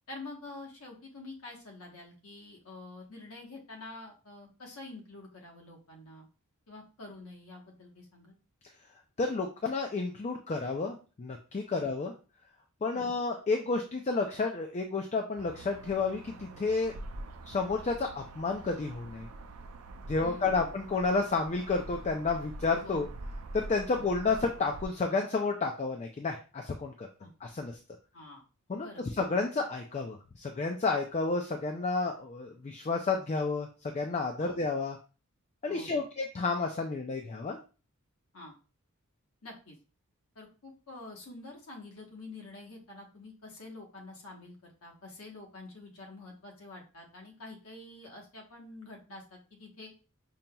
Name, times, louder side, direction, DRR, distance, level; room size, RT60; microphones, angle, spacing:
voice 1, 0.1-6.3 6.7-8.4 11.7-11.9 12.9-13.1 20.2-20.7 22.8-23.0 23.9-24.1 27.2-27.3 28.1-28.4 28.7-29.1 34.4-34.6 35.7-36.1 38.3-38.6 39.4-39.8 40.3-49.9, left 2 dB, 65° left, 0 dB, 1.1 m, -47 dB
voice 2, 9.2-12.1 12.8-16.9 17.4-19.3 20.1-23.1 23.5-27.1 27.4-27.7 28.7-35.0 35.6-37.6, left 3 dB, 30° left, 3 dB, 0.4 m, -31 dB
sound 1, 15.4-24.9, right 2 dB, 70° right, 0.4 m, -45 dB
5.3 x 2.8 x 2.2 m, 0.34 s
head